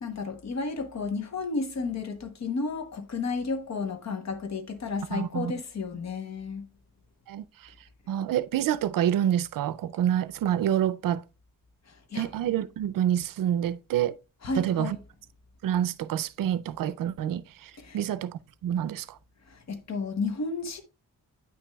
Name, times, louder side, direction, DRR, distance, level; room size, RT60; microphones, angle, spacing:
voice 1, 0.0-6.7 12.1-12.3 14.4-15.0 17.8-18.0 19.5-20.8, left 4 dB, 55° left, 1.0 m, -32 dB
voice 2, 5.1-5.5 7.3-7.4 8.1-11.2 12.2-14.1 14.6-15.0 15.6-17.4 17.9-18.3 18.6-19.0, right 10 dB, 75° right, 0.5 m, -27 dB
8.7 x 6.0 x 2.3 m
wide cardioid pair, 135°, 33 cm